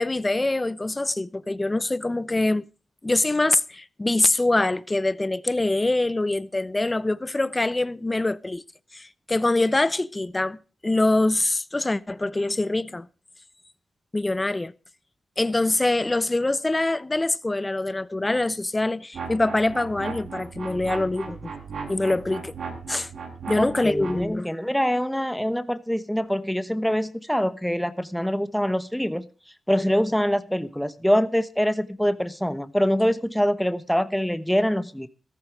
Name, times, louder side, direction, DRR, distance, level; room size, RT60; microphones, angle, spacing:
voice 1, 0.0-2.7 3.0-8.6 8.9-10.6 10.8-13.1 14.1-14.7 15.4-21.5 21.9-22.5 22.9-23.1 23.5-24.5, left 2 dB, 20° left, 0.8 m, -24 dB
sound 1, 19.1-24.3, right 5 dB, 70° right, 7.5 m, -36 dB
voice 2, 23.6-29.3 29.7-35.1, equal, ahead, 1.1 m, -24 dB
14.5 x 14.0 x 4.7 m
cardioid pair, 85°, 0 cm